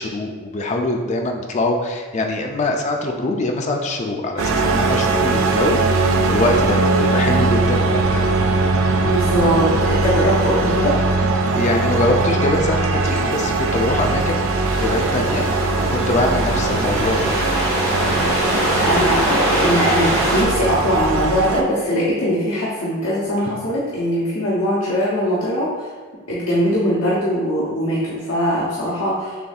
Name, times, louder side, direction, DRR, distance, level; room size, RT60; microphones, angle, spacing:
voice 1, 0.0-8.3 11.5-15.7 15.9-17.3, left 1 dB, 35° left, 2 dB, 0.4 m, -23 dB
sound 1, 4.4-21.6, right 3 dB, 70° right, 0.4 m, -20 dB
voice 2, 9.0-11.0 18.8-25.9 26.3-29.4, equal, 75° left, -7 dB, 0.8 m, -21 dB
sound 2, 14.6-20.4, equal, 20° right, 1.4 m, -23 dB
6.7 x 2.6 x 2.4 m, 1.4 s
head